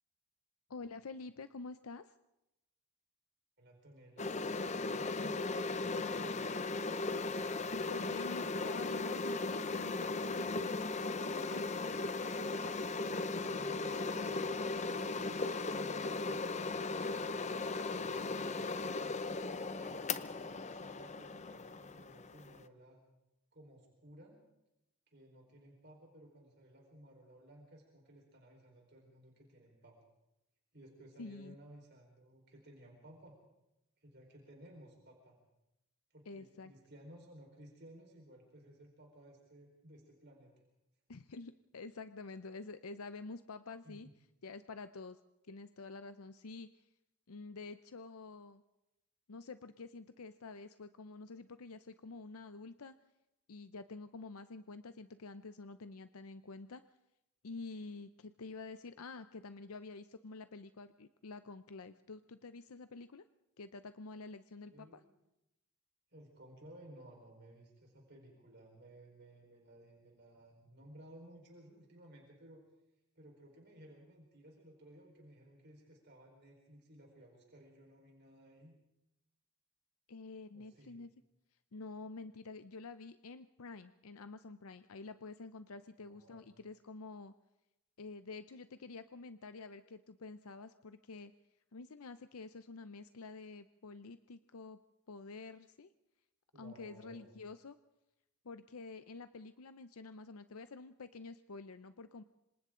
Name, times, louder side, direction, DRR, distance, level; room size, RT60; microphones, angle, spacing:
voice 1, 0.7-2.1 7.5-10.8 11.5-11.8 31.2-31.6 36.3-36.7 41.1-44.1 44.4-45.2 45.5-46.9 47.3-48.6 49.3-53.0 53.5-56.8 57.4-63.2 63.6-65.0 80.1-81.1 81.7-87.3 88.0-91.3 91.7-94.8 95.1-95.9 96.6-97.8 98.4-102.2, left 3 dB, 75° left, 11 dB, 0.7 m, -48 dB
voice 2, 3.6-5.4 5.7-6.6 13.4-19.2 19.6-23.0 23.5-24.4 25.1-30.0 30.7-33.4 34.0-35.4 36.1-40.5 43.8-44.1 64.7-65.1 66.1-72.6 73.1-78.7 80.5-81.0 85.8-86.4 96.5-97.3, right 1 dB, 50° right, 0 dB, 4.5 m, -58 dB
sound 1, 4.2-22.6, left 3 dB, 30° left, 0.7 m, -37 dB
26.5 x 26.0 x 3.8 m, 0.89 s
head